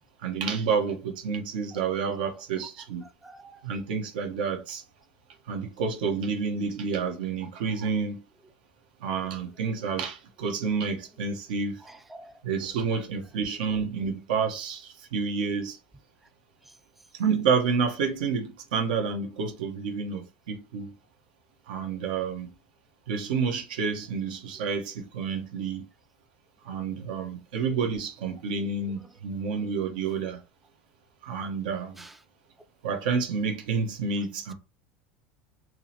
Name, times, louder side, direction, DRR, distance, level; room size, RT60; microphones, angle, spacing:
voice 1, 0.2-3.0 3.6-4.8 5.5-8.2 9.0-11.8 12.4-15.8 17.1-20.9 21.7-22.5 23.1-25.9 26.6-30.4 31.2-32.0 32.8-34.5, right 5 dB, 80° right, 1.2 m, -29 dB
voice 2, 3.2-3.6 12.1-12.3 32.0-32.1, right 2 dB, 5° right, 0.3 m, -46 dB
3.7 x 2.9 x 3.0 m
supercardioid pair, 120°, 5 cm